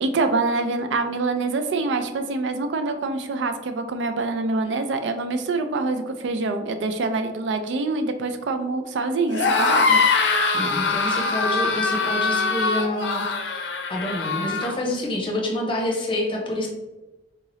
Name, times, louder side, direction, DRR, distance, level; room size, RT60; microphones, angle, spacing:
voice 1, 0.0-10.0, right 3 dB, 85° right, 8 dB, 0.4 m, -25 dB
sound 1, 9.3-14.7, left 4 dB, 70° left, 0.5 m, -22 dB
voice 2, 10.5-16.7, left 1 dB, 30° left, -1 dB, 0.8 m, -27 dB
3.7 x 2.7 x 3.0 m, 1.1 s
head